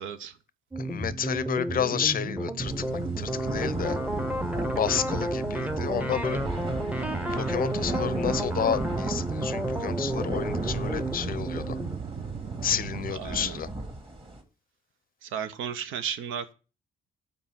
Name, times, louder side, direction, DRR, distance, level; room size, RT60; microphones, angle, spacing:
voice 1, 0.0-0.3 13.3-13.4 15.3-16.5, right 8 dB, 85° right, 0.7 m, -33 dB
sound 1, 0.7-12.0, right 1 dB, 5° right, 0.7 m, -32 dB
voice 2, 0.8-4.0 4.8-6.4 7.3-11.8 12.6-13.7, left 8 dB, 45° left, 0.5 m, -30 dB
sound 2, 2.6-14.4, right 1 dB, 25° right, 1.8 m, -37 dB
sound 3, 2.6-13.1, right 7 dB, 45° right, 0.7 m, -37 dB
5.4 x 4.3 x 5.7 m
cardioid pair, 90°, 20 cm